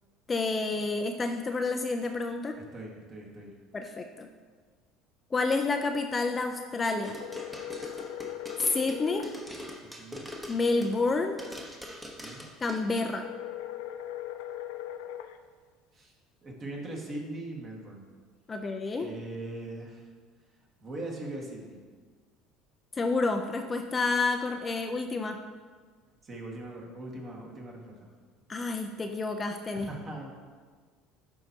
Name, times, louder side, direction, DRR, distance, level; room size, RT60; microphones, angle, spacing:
voice 1, 0.3-2.5 3.7-4.3 5.3-7.2 8.7-9.3 10.5-11.4 12.6-13.2 18.5-19.1 22.9-25.4 28.5-29.9, left 3 dB, 20° left, 5 dB, 0.4 m, -29 dB
voice 2, 2.6-3.5 9.8-10.2 12.2-12.4 15.9-16.1 16.4-18.0 19.0-20.1 20.8-21.8 26.2-28.1 29.7-30.3, right 2 dB, 35° right, -1 dB, 1.6 m, -40 dB
sound 1, 7.0-11.1 11.4-12.8, equal, 5° right, 0.9 m, -42 dB
sound 2, 7.2-9.3 13.2-15.4, left 12 dB, 90° left, 0.4 m, -39 dB
11.5 x 4.6 x 2.8 m, 1.5 s
supercardioid pair, 120°, 0 cm